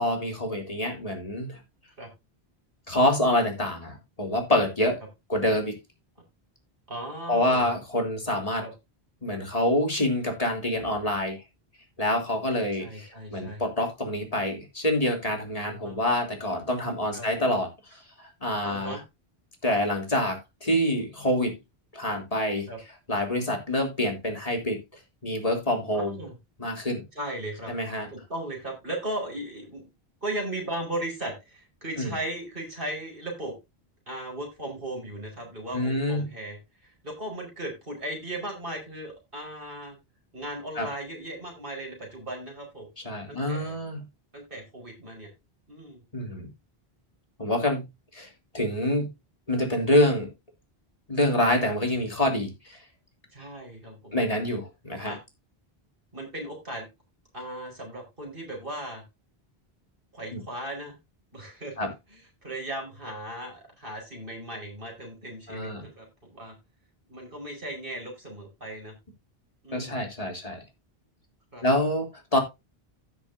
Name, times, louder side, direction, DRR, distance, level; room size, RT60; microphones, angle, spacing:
voice 1, 0.0-1.6 2.9-5.0 5.3-5.8 7.3-8.6 9.2-11.4 12.0-18.9 19.6-21.6 21.9-22.7 23.1-24.8 25.2-26.2 26.6-27.0 27.7-28.1 32.0-32.1 35.7-36.2 40.8-40.9 43.0-44.0 46.1-46.5 47.4-47.9 48.1-48.3 48.5-49.1 49.5-50.3 51.1-52.8 54.1-55.1 60.3-60.4 61.8-61.9 65.5-65.8 69.7-70.6 71.6-72.4, left 1 dB, 35° left, 3.2 m, -26 dB
voice 2, 6.9-7.7 8.6-8.7 12.8-13.6 15.6-16.0 17.1-17.3 18.6-19.0 22.7-22.8 25.9-26.4 27.1-27.7 28.1-29.9 30.2-33.5 34.1-40.0 40.3-42.9 43.3-43.8 44.3-45.3 45.7-46.0 51.2-51.3 53.3-54.1 55.0-55.2 56.1-56.9 57.3-59.0 60.1-61.0 61.3-66.5 67.1-68.9 69.6-70.0 71.5-71.6, right 1 dB, 60° right, 5.2 m, -37 dB
16.5 x 6.1 x 2.7 m
omnidirectional pair, 1.0 m